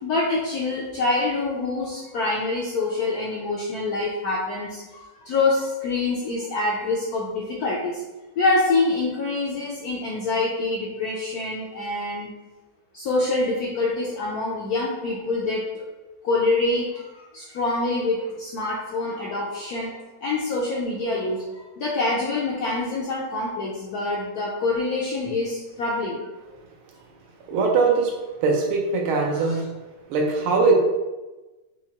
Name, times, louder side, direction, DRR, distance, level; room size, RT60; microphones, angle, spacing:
voice 1, 0.0-8.0 8.4-12.3 12.9-15.6 16.2-19.9 20.2-26.2 29.3-29.6, left 3 dB, 75° left, -4 dB, 0.8 m, -26 dB
voice 2, 27.5-28.1 28.4-29.6 30.1-30.7, right 4 dB, 85° right, 0 dB, 1.6 m, -21 dB
4.5 x 2.7 x 2.8 m, 1.1 s
omnidirectional pair, 2.3 m